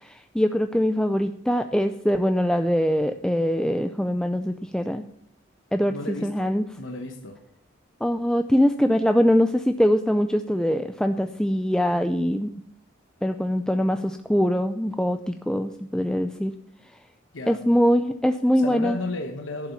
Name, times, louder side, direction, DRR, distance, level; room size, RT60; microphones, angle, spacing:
voice 1, 0.0-5.0 5.7-5.9 6.2-6.6 8.0-12.5 13.2-16.5 17.5-19.0, equal, 5° left, 7 dB, 0.4 m, -23 dB
voice 2, 5.9-7.4 17.3-17.6 18.5-19.7, left 2 dB, 70° left, 5 dB, 1.2 m, -34 dB
11.5 x 7.2 x 7.0 m, 0.68 s
head